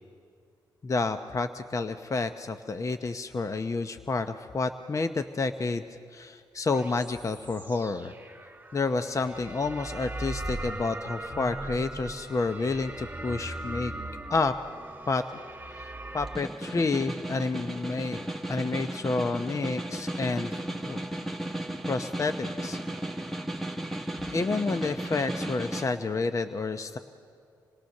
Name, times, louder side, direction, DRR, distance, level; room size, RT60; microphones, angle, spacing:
voice 1, 0.8-5.8 6.1-8.1 8.7-13.9 14.3-14.5 15.1-15.2 15.7-20.5 20.9-21.0 21.9-22.8 24.3-27.0, left 3 dB, 40° left, 9 dB, 0.8 m, -30 dB
sound 1, 6.7-16.4, right 2 dB, 20° right, 2.9 m, -39 dB
Snare drum, 16.1-25.9, right 1 dB, ahead, 1.8 m, -35 dB
27.0 x 18.0 x 6.6 m, 2.3 s
cardioid pair, 60°, 8 cm